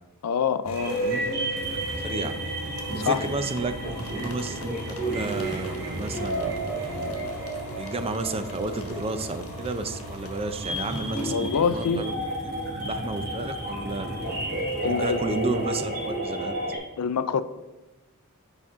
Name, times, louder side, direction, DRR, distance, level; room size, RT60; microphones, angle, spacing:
voice 1, 0.2-1.0 3.0-3.2 11.3-12.0 14.8-15.2 17.0-17.4, left 6 dB, 85° left, 0.4 m, -25 dB
sound 1, 0.6-12.0, left 1 dB, 65° left, 1.3 m, -42 dB
sound 2, 0.7-16.8, right 1 dB, 45° right, 2.7 m, -32 dB
sound 3, 0.9-16.8, equal, 75° right, 2.4 m, -41 dB
voice 2, 1.7-2.3 2.9-6.5 6.8-7.1 7.8-12.1 12.4-14.1 14.8-16.5, right 2 dB, 25° right, 0.5 m, -32 dB
8.6 x 5.2 x 3.6 m
head